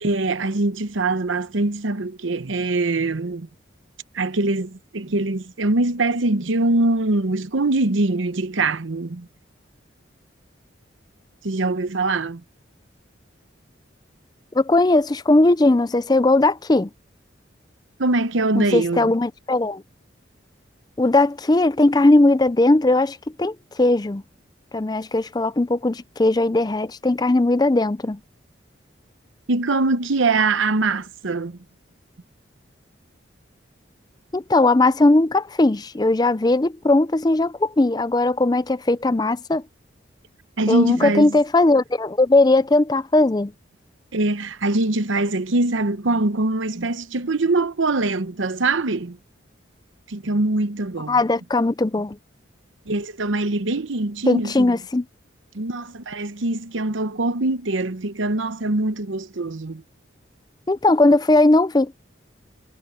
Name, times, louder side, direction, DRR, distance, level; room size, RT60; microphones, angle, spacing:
voice 1, 0.0-3.5 4.1-9.3 11.4-12.4 18.0-19.1 29.5-31.6 40.6-41.4 44.1-49.2 50.1-51.2 52.9-54.8 55.5-59.8, right 2 dB, 85° right, 0.9 m, -23 dB
voice 2, 14.5-16.9 18.6-19.8 21.0-24.2 24.7-28.2 34.3-39.6 40.7-43.5 51.1-52.2 54.3-55.0 60.7-61.9, left 2 dB, 20° left, 0.4 m, -18 dB
head